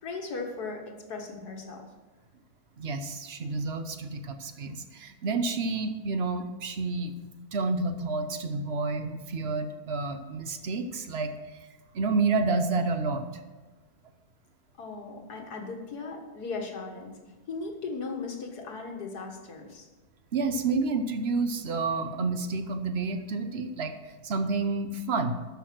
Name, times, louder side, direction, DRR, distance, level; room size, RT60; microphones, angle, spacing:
voice 1, 0.0-1.9 14.8-17.2 17.5-19.9, left 4 dB, 85° left, 2 dB, 2.2 m, -37 dB
voice 2, 2.8-7.1 7.5-11.7 11.9-13.3 20.3-23.9 24.2-25.4, right 3 dB, 50° right, 8 dB, 1.0 m, -29 dB
13.0 x 6.3 x 6.2 m, 1.2 s
omnidirectional pair, 1.6 m